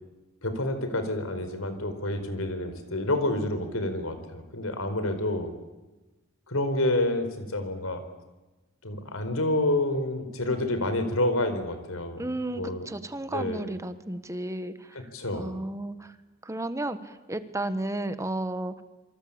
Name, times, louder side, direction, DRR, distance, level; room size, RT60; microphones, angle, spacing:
voice 1, 0.4-5.5 6.5-8.0 8.8-12.2 12.6-12.9 13.3-13.7 14.9-15.5, left 1 dB, 90° left, 9 dB, 4.5 m, -28 dB
voice 2, 12.2-15.0 15.3-16.1 16.4-18.8, right 1 dB, 15° right, 11 dB, 1.3 m, -33 dB
27.0 x 24.5 x 8.8 m, 1.1 s
head